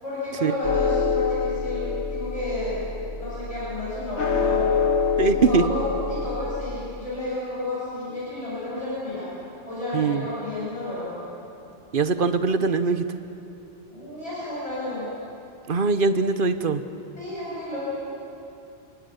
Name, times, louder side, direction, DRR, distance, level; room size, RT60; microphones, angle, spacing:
voice 1, 0.0-2.8 3.2-4.9 5.3-9.3 9.7-11.2 13.9-15.1 17.2-17.9, left 1 dB, 30° left, -9 dB, 8.0 m, -31 dB
sound 1, 0.6-6.6, left 5 dB, 80° left, 1.8 m, -26 dB
voice 2, 5.2-5.6 9.9-10.2 11.9-13.2 15.7-16.8, right 4 dB, 50° right, 11 dB, 1.1 m, -22 dB
29.5 x 19.5 x 7.2 m, 2.8 s
omnidirectional pair, 1.1 m